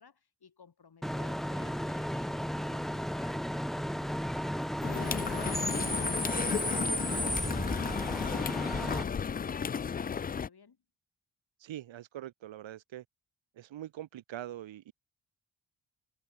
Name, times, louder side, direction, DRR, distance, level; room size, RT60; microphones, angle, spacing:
voice 1, 0.0-3.6 10.1-10.8, left 6 dB, 55° left, 7.8 m, -59 dB
Bus / Idling / Screech, 1.0-9.0, equal, ahead, 1.4 m, -34 dB
sound 1, 4.8-10.5, left 6 dB, 20° left, 0.3 m, -34 dB
voice 2, 11.6-13.0 13.5-14.9, right 12 dB, 90° right, 1.5 m, -43 dB
cardioid pair, 60°, 45 cm